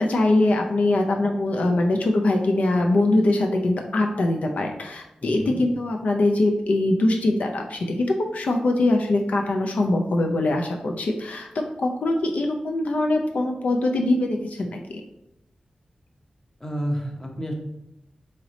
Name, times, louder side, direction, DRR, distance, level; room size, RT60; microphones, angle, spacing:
voice 1, 0.0-15.0, left 2 dB, 70° left, 2 dB, 0.4 m, -22 dB
voice 2, 5.2-5.6 16.6-17.5, equal, 20° left, 1 dB, 0.8 m, -30 dB
4.0 x 3.2 x 3.9 m, 0.85 s
wide cardioid pair, 125°, 3 cm